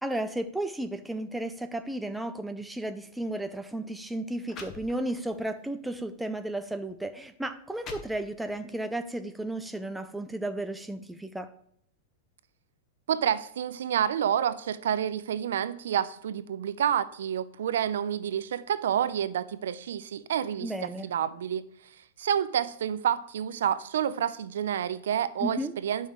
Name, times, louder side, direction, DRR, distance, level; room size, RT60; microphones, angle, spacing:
voice 1, 0.0-11.5 20.6-21.1 25.4-25.7, right 1 dB, ahead, 0.4 m, -33 dB
sound 1, 3.2-3.4 4.1-4.2 4.5-5.4 5.9-6.1 6.9-7.0 7.5-8.6, left 5 dB, 20° left, 0.7 m, -46 dB
voice 2, 13.1-21.7 22.2-26.1, right 9 dB, 85° right, 0.5 m, -29 dB
10.0 x 5.5 x 3.1 m
supercardioid pair, 170°, 0 cm